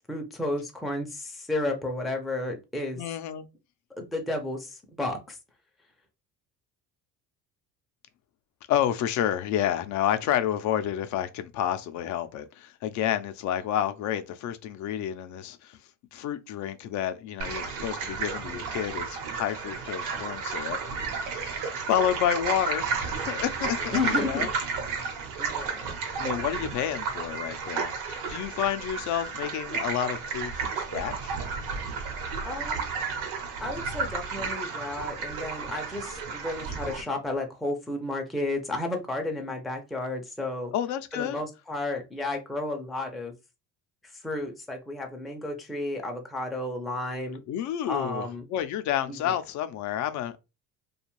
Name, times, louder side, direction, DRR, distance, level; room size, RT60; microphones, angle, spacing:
voice 1, 0.1-3.0 4.0-5.4 23.9-24.5 25.4-26.0 32.4-32.8 33.6-40.7 41.1-43.3 44.1-47.4 47.8-48.5 49.1-49.4, left 2 dB, ahead, 0.4 m, -32 dB
voice 2, 2.9-3.5 8.7-15.8 16.1-20.8 21.9-24.5 26.2-31.3 40.7-41.4 47.5-50.4, left 10 dB, 60° left, 0.5 m, -30 dB
sound 1, 17.4-37.0, right 5 dB, 80° right, 0.9 m, -32 dB
2.5 x 2.3 x 3.0 m
cardioid pair, 115°, 33 cm